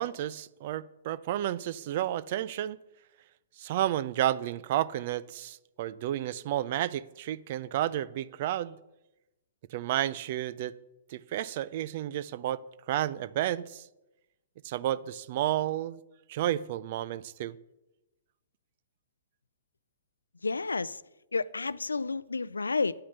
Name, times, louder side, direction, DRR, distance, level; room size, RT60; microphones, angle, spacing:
voice 1, 0.0-2.8 3.6-8.8 9.7-10.7 11.1-12.6 12.9-13.9 14.6-16.0 16.3-17.6, right 12 dB, 50° right, 0.5 m, -31 dB
voice 2, 20.4-20.9 21.3-22.9, left 4 dB, 90° left, 0.4 m, -30 dB
10.0 x 8.6 x 6.6 m
hypercardioid pair, 120°, 0 cm